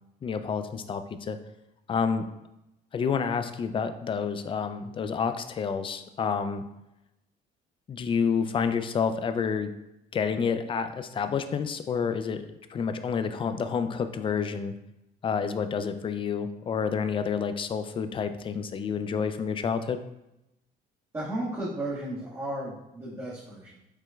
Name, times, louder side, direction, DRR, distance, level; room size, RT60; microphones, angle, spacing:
voice 1, 0.2-1.4 1.9-2.2 2.9-6.6 7.9-9.7 10.1-12.4 12.7-14.8 15.2-20.0, left 6 dB, 30° left, 10 dB, 0.4 m, -29 dB
voice 2, 21.1-23.8, right 1 dB, 20° right, -10 dB, 1.6 m, -34 dB
4.9 x 4.3 x 2.3 m, 0.89 s
cardioid pair, 110°, 17 cm